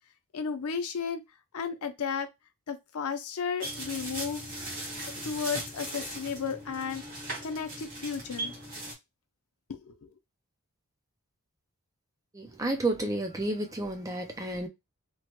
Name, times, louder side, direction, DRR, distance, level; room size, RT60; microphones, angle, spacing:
voice 1, 0.3-1.2 1.5-2.3 2.7-4.4 5.2-7.0 7.4-8.5 9.7-10.1, left 6 dB, 80° left, 0.6 m, -33 dB
sound 1, 3.6-8.9, right 1 dB, 40° right, 1.2 m, -38 dB
voice 2, 12.3-14.7, right 2 dB, 15° right, 0.4 m, -31 dB
3.0 x 2.2 x 2.8 m
head